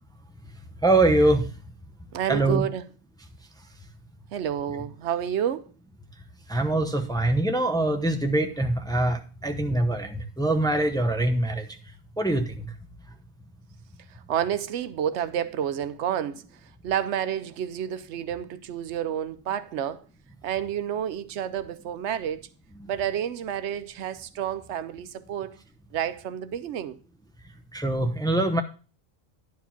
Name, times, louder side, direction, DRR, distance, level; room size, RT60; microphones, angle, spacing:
voice 1, 0.8-1.4 2.3-2.6 6.5-11.6 12.2-12.7 22.8-22.9 27.7-28.6, right 2 dB, 5° left, 0.7 m, -23 dB
voice 2, 2.1-2.8 4.3-5.6 14.1-16.4 16.8-20.0 20.4-22.5 22.9-25.6 25.9-27.0, right 9 dB, 85° right, 0.9 m, -29 dB
10.5 x 4.8 x 5.7 m
omnidirectional pair, 1.1 m